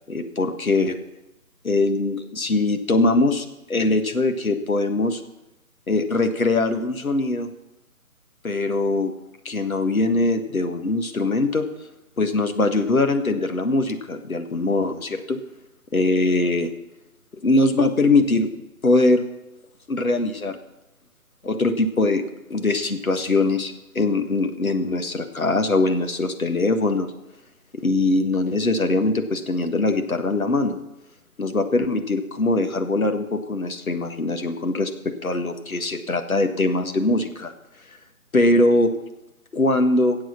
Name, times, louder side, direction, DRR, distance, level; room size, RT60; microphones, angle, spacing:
voice 1, 0.1-1.0 1.6-5.2 5.9-7.5 8.4-9.1 9.5-11.7 12.2-15.4 15.9-16.7 17.4-18.5 18.8-19.2 19.9-20.6 21.4-22.2 22.5-27.1 27.8-30.8 31.4-37.5 38.3-38.9 39.5-40.2, left 2 dB, 70° left, 7 dB, 1.6 m, -22 dB
15.5 x 7.7 x 6.0 m, 0.93 s
figure-of-eight pair, 155°, 43 cm